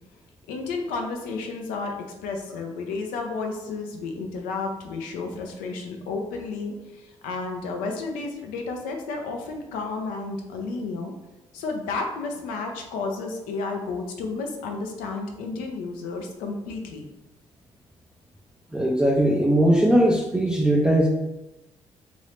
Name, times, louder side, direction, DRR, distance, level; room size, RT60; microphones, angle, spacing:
voice 1, 0.5-2.0 2.2-11.1 11.5-17.0, left 3 dB, 75° left, 3 dB, 0.5 m, -32 dB
voice 2, 18.7-21.1, right 1 dB, 5° right, -1 dB, 0.4 m, -19 dB
3.0 x 2.6 x 3.2 m, 0.99 s
hypercardioid pair, 45°, 14 cm